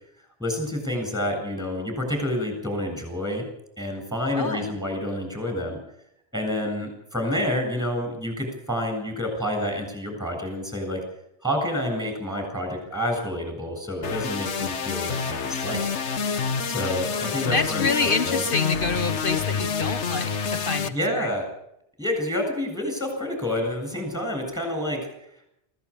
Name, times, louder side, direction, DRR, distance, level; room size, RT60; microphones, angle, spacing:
voice 1, 0.4-3.4 3.8-5.8 6.3-11.0 11.4-16.0 16.7-18.4 20.9-21.5 22.0-25.1, left 1 dB, 5° right, 4 dB, 7.9 m, -28 dB
voice 2, 4.3-4.7 17.5-20.3 20.7-21.3, left 4 dB, 50° left, 11 dB, 1.4 m, -27 dB
sound 1, 14.0-20.9, left 6 dB, 85° left, 1.6 m, -28 dB
24.0 x 16.0 x 8.8 m, 0.77 s
omnidirectional pair, 1.2 m